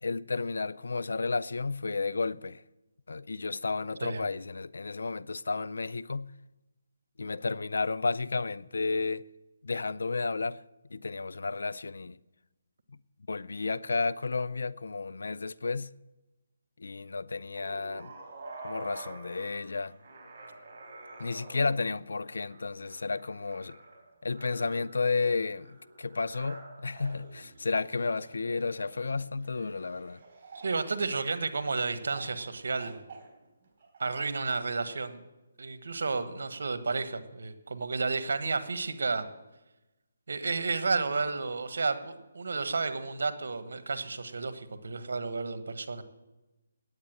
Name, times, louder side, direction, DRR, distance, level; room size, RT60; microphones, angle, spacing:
voice 1, 0.0-2.6 3.1-6.3 7.2-9.3 9.6-10.6 10.9-12.2 13.3-15.9 16.8-18.1 18.6-20.0 21.2-23.8 24.2-30.2, left 4 dB, 80° left, 0.4 m, -32 dB
sound 1, 17.5-31.6 32.1-32.5 32.8-34.6, right 2 dB, 35° right, 3.9 m, -49 dB
voice 2, 30.5-33.0 34.0-35.2 35.6-39.3 40.3-46.0, right 4 dB, 70° right, 1.2 m, -32 dB
9.5 x 8.2 x 8.9 m
hypercardioid pair, 160°, 0 cm